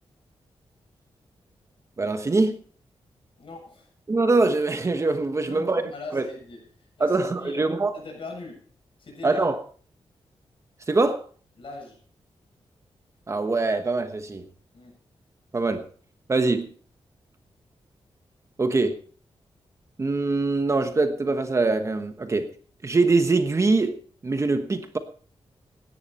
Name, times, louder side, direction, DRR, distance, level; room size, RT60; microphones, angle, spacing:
voice 1, 2.0-2.6 4.1-6.3 7.0-7.9 9.2-9.5 10.9-11.2 13.3-14.4 15.5-15.8 16.3-16.7 18.6-19.0 20.0-22.5 22.8-24.0 24.2-25.0, right 3 dB, 30° right, 1.2 m, -23 dB
voice 2, 3.4-3.9 5.4-6.7 7.0-8.6 9.0-9.5 11.6-12.0 14.7-14.9, left 3 dB, 60° left, 7.4 m, -40 dB
16.0 x 11.0 x 4.3 m
wide cardioid pair, 140°, 10 cm